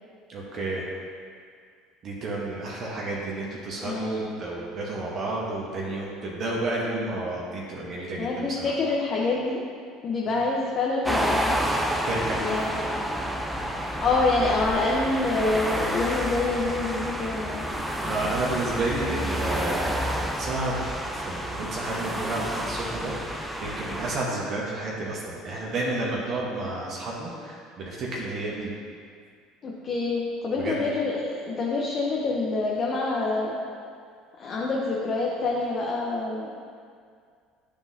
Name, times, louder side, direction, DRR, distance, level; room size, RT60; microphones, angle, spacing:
voice 1, 0.3-0.8 2.0-8.7 12.1-12.4 18.0-28.7 30.6-30.8, right 2 dB, 50° right, -4 dB, 1.2 m, -31 dB
voice 2, 3.8-4.4 8.2-9.6 10.0-11.5 12.3-12.9 14.0-17.6 29.6-33.6 34.4-36.7, left 3 dB, 45° left, -3 dB, 0.8 m, -26 dB
sound 1, 11.0-24.2, equal, 5° right, 0.6 m, -29 dB
9.8 x 3.7 x 2.7 m, 2.2 s
hypercardioid pair, 80°, 0 cm